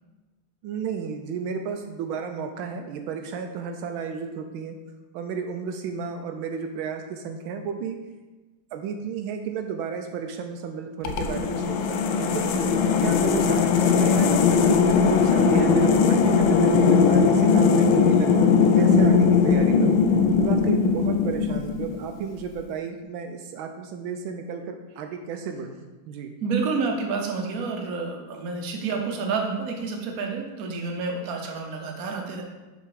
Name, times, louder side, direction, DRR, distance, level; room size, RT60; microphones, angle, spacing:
voice 1, 0.6-4.8 5.1-8.0 8.7-20.0 20.4-26.3, right 6 dB, 80° right, 5 dB, 1.4 m, -33 dB
sound 1, 11.0-22.1, left 5 dB, 80° left, 1.4 m, -19 dB
voice 2, 26.4-32.4, right 4 dB, 55° right, 2 dB, 1.2 m, -29 dB
5.6 x 5.0 x 4.8 m, 1.2 s
omnidirectional pair, 2.2 m